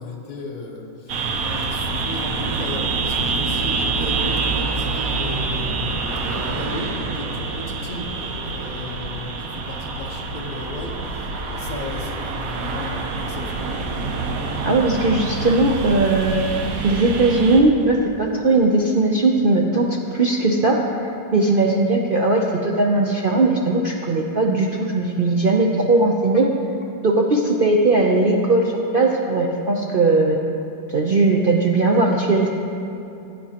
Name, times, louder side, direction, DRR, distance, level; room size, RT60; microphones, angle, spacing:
voice 1, 0.0-13.7, left 2 dB, 30° left, -1 dB, 1.1 m, -35 dB
sound 1, 1.1-17.6, right 4 dB, 60° right, 1.1 m, -26 dB
voice 2, 14.6-16.5 16.8-20.8 21.3-26.5 27.0-28.6 28.9-30.4 30.9-32.5, right 2 dB, 75° right, -1 dB, 0.4 m, -18 dB
16.5 x 9.4 x 2.9 m, 2.8 s
omnidirectional pair, 1.9 m